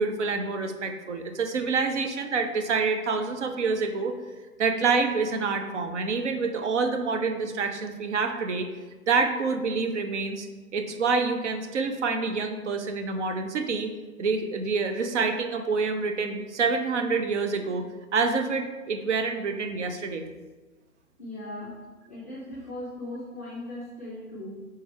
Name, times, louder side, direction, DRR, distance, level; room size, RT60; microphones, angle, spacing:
voice 1, 0.0-4.1 4.6-8.7 9.1-10.5 10.7-13.9 14.2-17.8 18.1-20.3, right 4 dB, 55° right, 7 dB, 0.5 m, -27 dB
voice 2, 21.2-21.8 22.1-24.5, left 1 dB, 10° left, -8 dB, 0.4 m, -38 dB
4.5 x 3.2 x 3.4 m, 1.3 s
hypercardioid pair, 135°, 44 cm